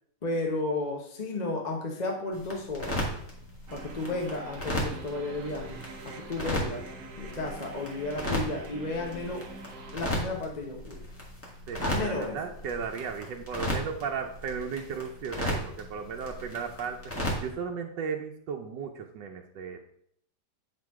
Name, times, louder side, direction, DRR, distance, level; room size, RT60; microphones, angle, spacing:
voice 1, 0.2-3.0 3.7-5.8 6.0-6.8 7.2-9.4 9.9-11.0 11.8-12.4, left 2 dB, 30° left, 1 dB, 0.9 m, -33 dB
sound 1, 2.3-17.5, equal, 10° left, 1.7 m, -36 dB
sound 2, 3.7-10.0, right 3 dB, 65° right, 1.4 m, -45 dB
voice 2, 11.7-17.0 17.4-19.8, right 6 dB, 85° right, 2 dB, 1.3 m, -35 dB
8.3 x 4.5 x 4.7 m, 0.69 s
omnidirectional pair, 1.9 m